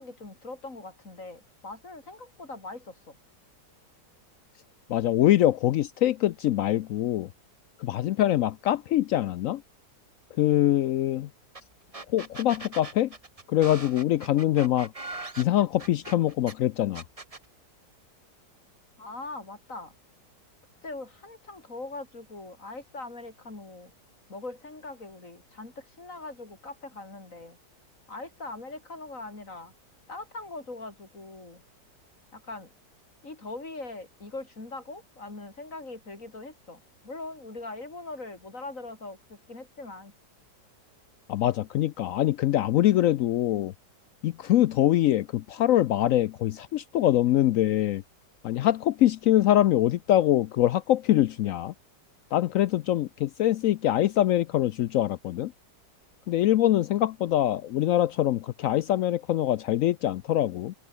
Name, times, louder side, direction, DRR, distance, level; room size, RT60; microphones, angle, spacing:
voice 1, 0.0-3.2 19.0-19.9 20.8-23.9 24.3-27.6 28.1-29.7 30.1-31.6 32.3-32.7 33.2-40.1, left 2 dB, 45° left, 4.7 m, -41 dB
voice 2, 4.9-7.3 7.8-9.6 10.4-11.3 12.1-13.1 13.5-14.9 15.4-17.0 41.3-43.7 44.2-48.0 48.4-51.7 52.3-55.5 56.3-60.7, left 13 dB, 80° left, 0.7 m, -24 dB
sound 1, 11.5-11.6 11.9-16.5 16.9-17.4, right 3 dB, 20° right, 1.6 m, -40 dB
open air
omnidirectional pair, 1.9 m